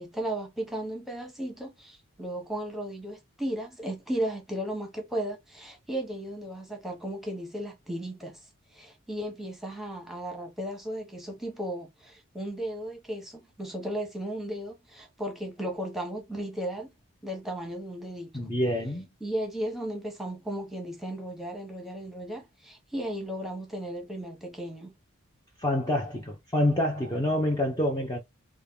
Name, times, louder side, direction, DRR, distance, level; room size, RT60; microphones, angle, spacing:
voice 1, 0.0-8.5 8.7-16.9 17.2-18.5 19.2-24.9, right 1 dB, ahead, 0.9 m, -35 dB
voice 2, 18.3-19.1 25.6-28.2, left 1 dB, 20° left, 0.6 m, -27 dB
3.5 x 2.2 x 3.5 m
head